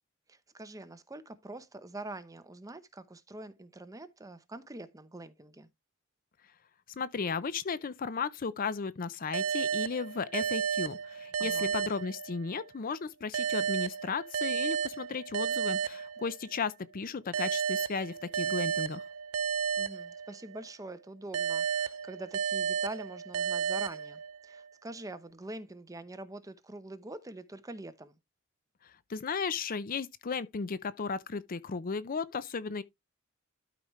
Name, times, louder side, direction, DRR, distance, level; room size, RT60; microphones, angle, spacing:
voice 1, 0.3-5.7 11.4-11.7 19.8-28.1, right 2 dB, 15° right, 0.8 m, -44 dB
voice 2, 7.0-19.0 28.8-32.8, left 5 dB, 40° left, 0.5 m, -35 dB
sound 1, 9.3-12.7 13.3-16.6 17.3-20.7 21.3-24.6, right 6 dB, 80° right, 0.5 m, -33 dB
12.5 x 4.9 x 3.1 m
head